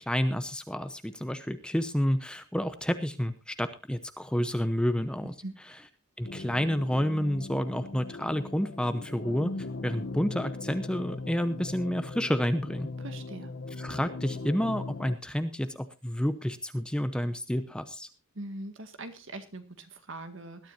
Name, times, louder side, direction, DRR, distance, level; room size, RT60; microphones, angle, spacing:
voice 1, 0.0-5.3 6.2-9.5 9.8-12.9 13.8-18.1, equal, 5° left, 10 dB, 0.8 m, -29 dB
sound 1, 6.2-15.2, left 3 dB, 55° left, 0.9 m, -39 dB
voice 2, 13.0-13.5 18.4-20.7, right 2 dB, 60° right, 8 dB, 2.0 m, -41 dB
20.5 x 12.5 x 2.7 m, 0.27 s
head